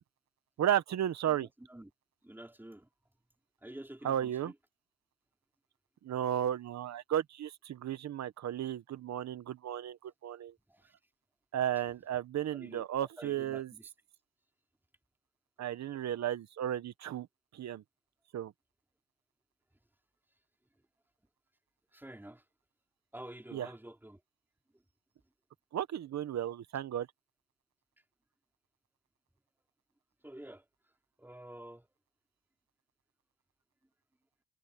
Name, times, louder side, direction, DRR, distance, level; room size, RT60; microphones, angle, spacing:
voice 1, 0.6-1.5 4.0-4.5 6.0-10.5 11.5-13.7 15.6-17.3 17.5-17.8 18.3-18.5 23.5-23.7 25.7-27.1, right 10 dB, 65° right, 1.4 m, -34 dB
voice 2, 1.3-1.9 2.2-2.9 3.6-4.5 10.7-11.0 12.5-13.9 21.9-22.4 23.1-24.2 24.7-24.8 30.2-30.6 31.2-31.9, right 1 dB, 5° right, 4.3 m, -49 dB
cardioid pair, 90°, 30 cm